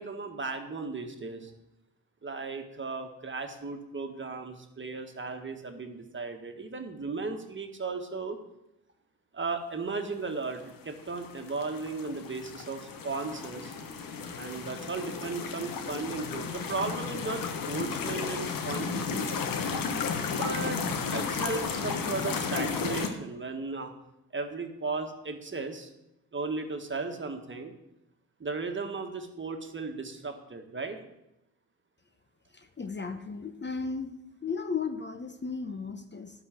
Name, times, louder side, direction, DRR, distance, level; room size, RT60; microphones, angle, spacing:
voice 1, 0.0-1.5 2.2-8.4 9.3-13.8 14.3-19.2 20.3-23.9 24.3-25.9 26.3-27.7 28.4-31.0, right 4 dB, 30° right, 5 dB, 1.6 m, -36 dB
sound 1, 11.0-23.1, left 5 dB, 65° left, 1.2 m, -33 dB
voice 2, 32.8-34.1 34.4-36.3, left 5 dB, 30° left, 9 dB, 0.9 m, -34 dB
12.0 x 4.1 x 7.6 m, 0.87 s
hypercardioid pair, 45°, 36 cm